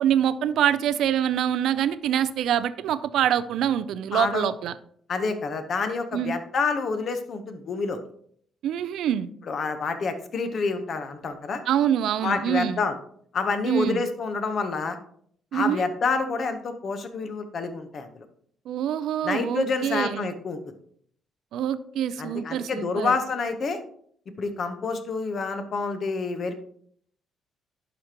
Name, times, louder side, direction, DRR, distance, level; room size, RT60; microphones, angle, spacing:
voice 1, 0.0-4.7 6.1-6.3 8.6-9.3 11.7-12.8 13.7-14.1 15.5-15.8 18.7-20.3 21.5-23.1, right 10 dB, 75° right, 0.4 m, -25 dB
voice 2, 4.1-4.5 5.1-8.0 9.5-11.6 12.2-13.0 13.3-15.0 15.5-18.2 19.2-20.6 22.2-23.8 24.4-26.5, left 4 dB, 45° left, 0.9 m, -28 dB
11.0 x 5.0 x 2.9 m
cardioid pair, 125°, 0 cm